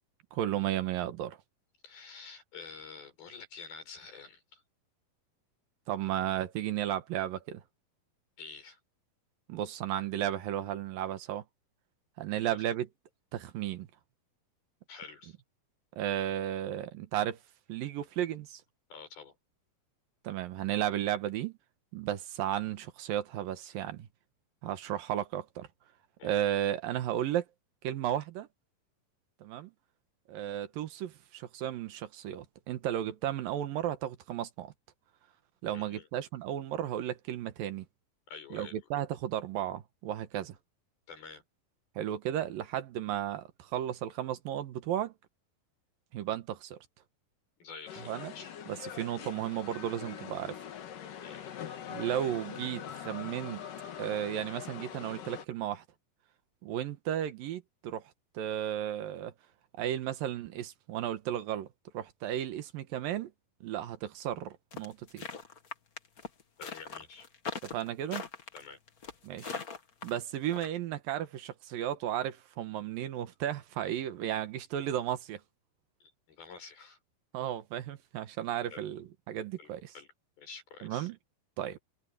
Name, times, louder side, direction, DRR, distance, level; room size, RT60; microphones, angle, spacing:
voice 1, 0.3-1.4 5.9-7.6 9.5-11.4 12.2-12.9 13.3-13.9 16.0-17.4 17.7-18.6 20.2-21.6 21.9-24.1 24.6-25.7 26.2-27.4 27.8-28.5 29.4-29.7 30.3-34.7 35.6-37.9 38.5-40.6 42.0-45.1 46.1-46.8 48.1-48.3 48.7-50.6 51.9-53.6 54.0-55.8 56.6-58.0 58.3-59.3 59.8-61.7 61.9-63.3 63.6-65.3 67.6-68.2 69.2-69.6 70.0-75.4 77.3-79.9 80.8-81.2 81.6-81.8, right 11 dB, 75° right, 2.9 m, -34 dB
voice 2, 1.8-4.6 8.4-8.8 12.3-12.6 14.9-15.4 18.9-19.4 26.2-26.4 35.7-36.1 38.3-38.9 41.1-41.4 47.6-48.6 51.2-51.5 66.6-67.3 68.1-68.2 68.5-68.8 76.0-77.0 78.7-78.8 79.6-79.7 79.9-80.1 80.4-81.1, left 5 dB, 85° left, 8.8 m, -48 dB
sound 1, 47.9-55.5, left 9 dB, 65° left, 3.4 m, -43 dB
sound 2, 64.7-70.7, left 5 dB, 45° left, 1.1 m, -40 dB
omnidirectional pair, 4.2 m